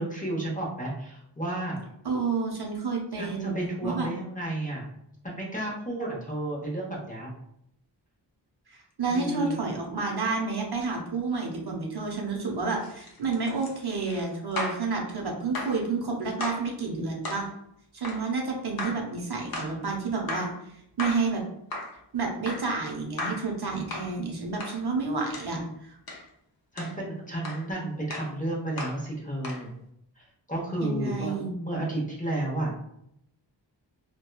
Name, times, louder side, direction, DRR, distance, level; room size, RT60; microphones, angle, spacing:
voice 1, 0.0-1.8 3.2-4.9 5.2-7.3 9.1-9.6 26.7-29.7 30.2-32.7, right 1 dB, 20° left, -3 dB, 0.8 m, -32 dB
voice 2, 2.0-4.1 8.7-17.5 17.9-20.5 21.0-21.4 22.1-25.6 25.9-26.0 30.8-31.5, right 4 dB, 60° right, 0 dB, 0.6 m, -30 dB
sound 1, 12.7-14.9 15.5-15.8 16.4-16.7 17.2-17.5 18.0-18.3 18.8-19.1 19.5-19.8 20.3-20.6 21.0-21.3 21.7-22.0 22.5-22.7 23.2-23.5 23.9-24.1 24.6-24.8 25.3-25.5 26.1-26.3 26.8-27.0 27.4-27.7 28.1-28.3 28.8-29.0 29.4-29.7, left 2 dB, 55° left, 0.6 m, -35 dB
2.9 x 2.2 x 2.2 m, 0.76 s
wide cardioid pair, 50°, 43 cm